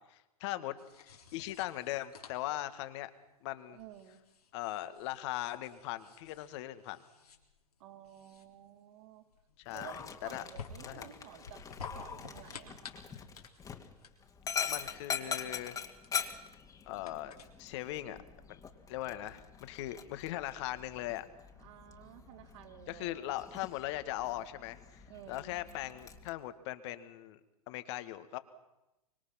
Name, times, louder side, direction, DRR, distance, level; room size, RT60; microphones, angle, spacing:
voice 1, 0.0-3.1 3.4-3.8 4.5-7.0 9.6-9.9 10.2-10.4 10.9-11.1 14.6-15.8 16.9-17.3 17.6-18.2 18.5-18.6 18.9-21.2 22.9-27.4 27.7-28.4, left 15 dB, 50° left, 11 dB, 2.0 m, -39 dB
sound 1, 0.8-18.0, left 5 dB, 80° left, 3.8 m, -53 dB
voice 2, 3.7-4.2 7.8-9.2 9.7-11.6 11.9-12.8 21.6-23.3 25.1-25.5, right 10 dB, 55° right, 4 dB, 4.1 m, -52 dB
Dog, 9.7-26.3, left 7 dB, 20° left, 2.4 m, -43 dB
25.0 x 24.5 x 6.0 m, 0.94 s
figure-of-eight pair, 105°, 19 cm